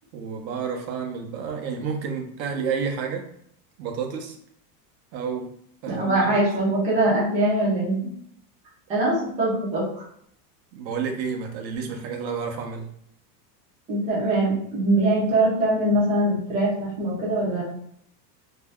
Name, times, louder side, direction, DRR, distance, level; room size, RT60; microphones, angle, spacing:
voice 1, 0.1-3.3 3.8-4.4 5.1-5.5 5.8-6.3 10.7-12.9, right 6 dB, 80° right, 3 dB, 0.8 m, -30 dB
voice 2, 5.9-8.1 8.9-10.0 13.9-17.6, right 1 dB, 15° right, -7 dB, 0.6 m, -22 dB
2.7 x 2.2 x 3.3 m, 0.68 s
supercardioid pair, 170°, 50 cm